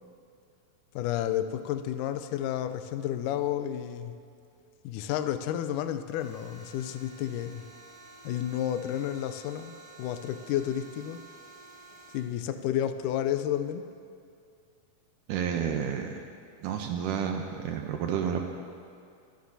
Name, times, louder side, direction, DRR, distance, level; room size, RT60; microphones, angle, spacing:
voice 1, 1.0-4.2 4.8-7.6 8.2-11.2 12.1-13.8, left 11 dB, 80° left, 9 dB, 1.9 m, -31 dB
sound 1, 6.2-12.2, right 2 dB, 40° left, 2.8 m, -51 dB
voice 2, 15.3-16.2 16.6-18.4, right 8 dB, 80° right, 4 dB, 2.0 m, -30 dB
24.5 x 11.5 x 2.7 m, 2.4 s
omnidirectional pair, 4.1 m